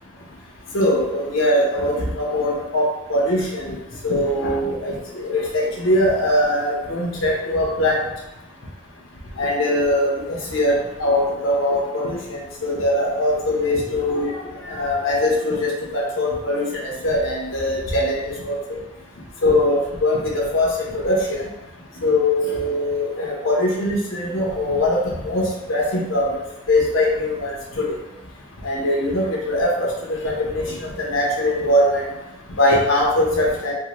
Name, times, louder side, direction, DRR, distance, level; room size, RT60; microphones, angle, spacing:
voice 1, 0.7-3.7 4.0-4.9 5.2-8.0 9.4-12.2 12.6-14.3 14.7-18.2 18.4-18.5 19.4-20.2 20.5-20.7 21.0-21.4 22.0-25.0 25.2-25.4 25.7-26.2 26.7-27.9 28.6-29.9 30.2-32.0 32.6-33.7, left 1 dB, 90° left, -3 dB, 0.8 m, -21 dB
3.6 x 2.1 x 3.0 m, 0.93 s
head